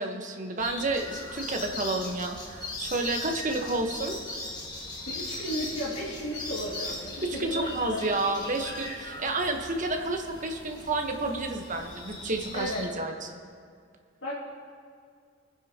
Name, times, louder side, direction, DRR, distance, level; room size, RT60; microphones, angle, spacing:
voice 1, 0.0-4.2 7.2-13.4, right 2 dB, 40° right, 3 dB, 1.2 m, -30 dB
sound 1, 0.6-12.9, left 2 dB, 20° left, 1.8 m, -39 dB
voice 2, 5.1-8.0 12.5-12.8 14.2-14.3, equal, 85° left, -8 dB, 2.3 m, -34 dB
26.0 x 9.9 x 3.0 m, 2.1 s
head